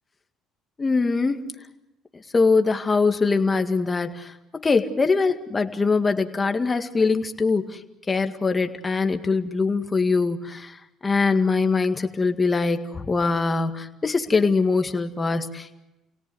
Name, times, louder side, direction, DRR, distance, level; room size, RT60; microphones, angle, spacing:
voice 1, 0.8-1.5 2.1-7.8 8.1-15.8, left 4 dB, 25° left, 6 dB, 1.9 m, -23 dB
29.0 x 18.0 x 7.9 m, 0.96 s
cardioid pair, 105°, 0 cm